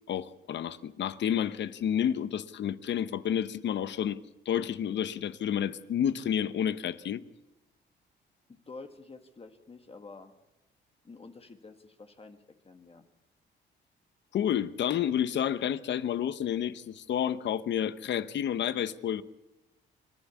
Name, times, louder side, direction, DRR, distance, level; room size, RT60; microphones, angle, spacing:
voice 1, 0.1-4.2 4.4-7.2 14.3-19.2, left 9 dB, 65° left, 1.0 m, -30 dB
voice 2, 8.5-10.3 11.0-13.1, left 3 dB, 30° left, 1.7 m, -49 dB
27.5 x 11.5 x 8.3 m
cardioid pair, 90°, 20 cm